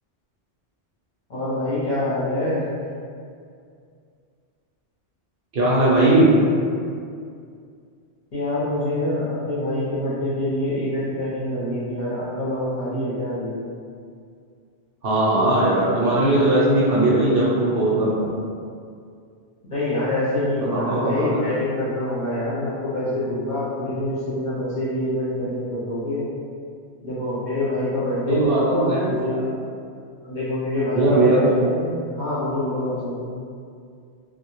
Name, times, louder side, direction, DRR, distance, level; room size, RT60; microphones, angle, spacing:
voice 1, 1.3-2.6 8.3-13.6 19.6-26.3 27.0-29.5 30.2-33.3, left 1 dB, 50° left, -10 dB, 0.7 m, -25 dB
voice 2, 5.5-6.3 15.0-18.4 20.7-21.4 28.3-29.5 30.9-31.6, right 1 dB, 60° right, -7 dB, 0.8 m, -19 dB
2.1 x 2.1 x 2.9 m, 2.3 s
omnidirectional pair, 1.2 m